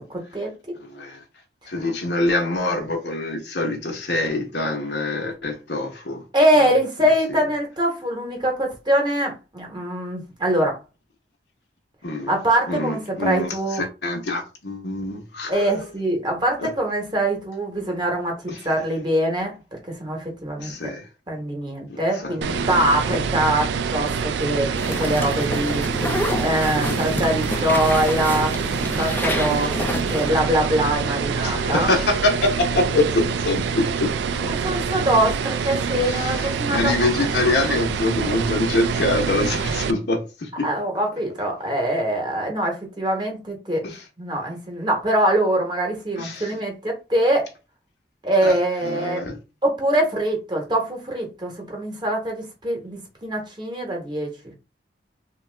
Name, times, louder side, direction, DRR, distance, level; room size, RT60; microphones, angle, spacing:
voice 1, 0.1-0.5 6.3-10.8 12.3-13.9 15.5-20.7 21.3-25.8 26.4-28.6 28.9-31.9 34.5-36.9 37.2-37.3 40.6-47.5 48.2-49.2 49.6-54.5, right 1 dB, 25° right, 0.9 m, -23 dB
voice 2, 0.8-1.2 1.7-6.2 7.3-7.4 12.0-12.3 12.7-15.8 16.6-16.7 18.5-18.6 20.6-21.1 21.9-22.8 23.1-23.2 23.7-23.8 26.8-27.5 29.4-30.2 31.4-34.1 36.0-40.7 43.8-44.0 46.2-46.5 48.4-48.6 48.8-49.4, left 2 dB, 70° left, 0.8 m, -25 dB
sound 1, 22.4-39.9, right 6 dB, 75° right, 0.3 m, -26 dB
sound 2, 24.8-30.4, left 1 dB, 10° left, 0.4 m, -29 dB
2.8 x 2.3 x 3.2 m
head